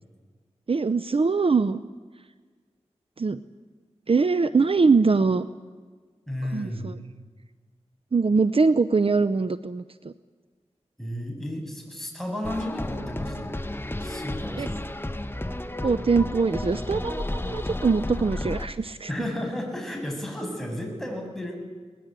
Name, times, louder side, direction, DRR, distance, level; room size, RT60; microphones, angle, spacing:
voice 1, 0.7-1.8 3.2-3.4 4.1-5.5 6.5-7.0 8.1-10.1 14.6-14.7 15.8-19.1, right 4 dB, 55° right, 13 dB, 0.7 m, -22 dB
voice 2, 6.3-6.9 11.0-13.6 14.0-14.8 19.1-21.6, left 1 dB, 5° left, 1 dB, 7.8 m, -33 dB
sound 1, 12.4-18.7, left 1 dB, 20° left, 1.3 m, -32 dB
22.0 x 20.0 x 9.0 m, 1.5 s
cardioid pair, 50°, 12 cm